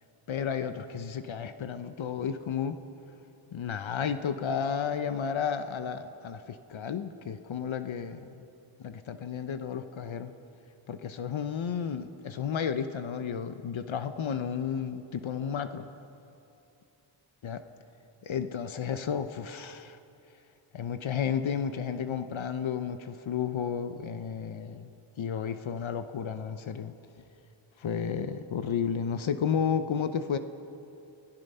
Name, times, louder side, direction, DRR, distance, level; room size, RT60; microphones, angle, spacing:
voice 1, 0.3-2.8 3.5-8.3 8.8-10.3 10.9-15.9 17.4-17.6 18.2-20.0 20.7-24.9 25.2-26.9 27.8-30.4, left 7 dB, 65° left, 10 dB, 1.0 m, -32 dB
28.5 x 17.5 x 5.6 m, 2.8 s
wide cardioid pair, 120°, 50 cm